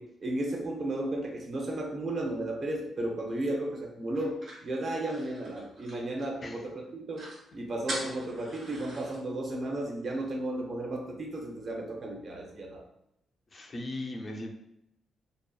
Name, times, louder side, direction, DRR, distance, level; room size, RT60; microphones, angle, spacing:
voice 1, 0.0-7.3 7.5-12.8, right 1 dB, 50° right, 1 dB, 0.6 m, -34 dB
sound 1, 4.2-6.5 6.8-6.9 7.1-7.4 7.9-9.2, right 1 dB, 75° right, 1.0 m, -41 dB
voice 2, 13.5-14.6, left 1 dB, 35° left, 3 dB, 0.4 m, -38 dB
2.7 x 2.2 x 2.3 m, 0.81 s
cardioid pair, 85°, 0 cm